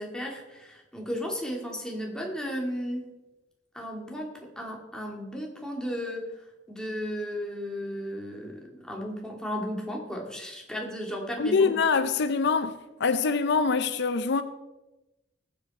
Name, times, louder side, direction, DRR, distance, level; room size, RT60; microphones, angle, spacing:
voice 1, 0.0-3.1 3.7-6.3 6.7-11.8, equal, 5° left, 2.3 m, -34 dB
voice 2, 11.4-14.4, left 4 dB, 60° left, 0.6 m, -24 dB
19.5 x 7.8 x 4.3 m
head